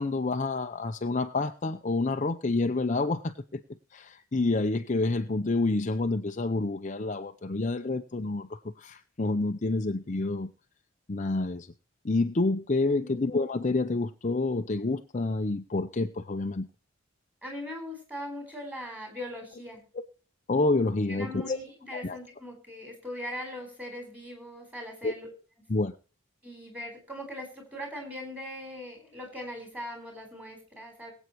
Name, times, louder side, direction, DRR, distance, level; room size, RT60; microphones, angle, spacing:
voice 1, 0.0-3.6 3.9-10.5 11.1-11.7 12.0-16.7 20.5-21.6 21.9-22.2 25.0-25.1 25.7-26.0, left 3 dB, 35° left, 6 dB, 0.6 m, -28 dB
voice 2, 17.4-19.8 21.1-25.3 26.4-31.1, left 1 dB, 5° right, 3 dB, 4.4 m, -40 dB
22.0 x 8.1 x 3.1 m, 0.39 s
head